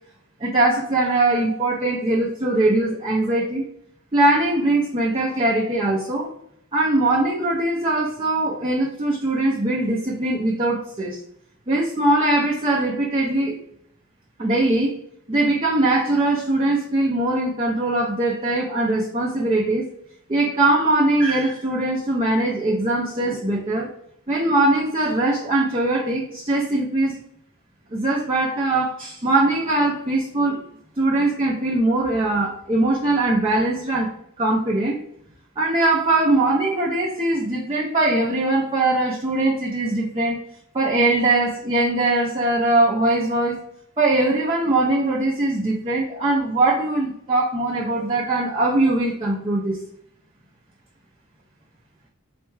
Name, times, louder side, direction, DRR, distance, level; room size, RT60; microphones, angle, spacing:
voice 1, 0.4-3.6 4.1-6.3 6.7-11.2 11.7-13.5 14.4-14.9 15.3-19.9 20.3-23.9 24.3-27.2 27.9-30.6 31.0-34.1 34.4-35.0 35.6-40.4 40.7-43.6 44.0-49.8, right 2 dB, 25° right, -5 dB, 0.5 m, -21 dB
4.1 x 2.3 x 3.1 m, 0.72 s
head